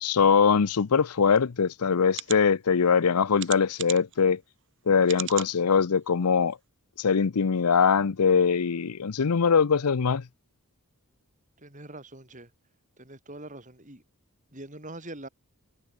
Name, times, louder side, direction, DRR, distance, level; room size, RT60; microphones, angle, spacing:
voice 1, 0.0-4.4 4.9-6.6 7.0-10.2, left 6 dB, 90° left, 0.6 m, -22 dB
sound 1, 1.3-1.4 2.1-2.4 3.4-4.2 5.0-5.5 6.1-6.2 6.5-6.6, right 13 dB, 55° right, 2.8 m, -35 dB
voice 2, 11.6-12.5 13.0-14.0 14.5-15.3, right 1 dB, 35° right, 5.5 m, -43 dB
head